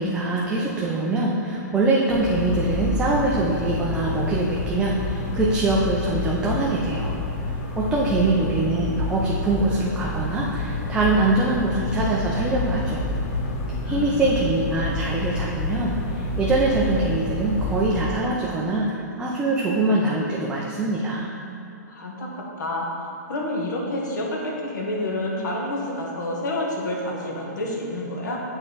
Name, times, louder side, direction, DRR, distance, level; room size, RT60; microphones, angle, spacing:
voice 1, 0.0-7.1 7.7-13.0 13.8-21.3, right 2 dB, 10° right, -4 dB, 0.5 m, -23 dB
sound 1, 2.1-18.0, left 2 dB, 40° left, 0.8 m, -28 dB
voice 2, 8.0-8.6 13.8-14.3 19.4-20.4 21.9-28.4, left 1 dB, 75° left, -1 dB, 1.5 m, -30 dB
8.0 x 4.4 x 4.1 m, 2.6 s
hypercardioid pair, 150°, 10 cm